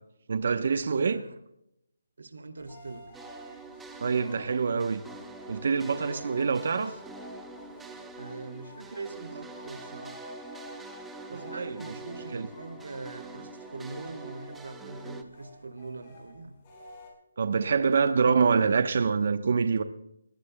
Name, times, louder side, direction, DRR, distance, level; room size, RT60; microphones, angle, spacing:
voice 1, 0.3-1.2 4.0-5.0 5.5-6.9 11.3-11.9 12.3-12.5 17.4-19.8, right 5 dB, 55° right, 0.9 m, -25 dB
voice 2, 2.2-3.1 8.2-10.2 11.3-16.6, right 3 dB, 80° right, 2.4 m, -42 dB
sound 1, 2.6-17.1, left 1 dB, 25° left, 5.1 m, -50 dB
sound 2, 3.1-15.2, right 3 dB, 5° right, 0.9 m, -45 dB
21.5 x 18.5 x 2.2 m
hypercardioid pair, 165°, 0 cm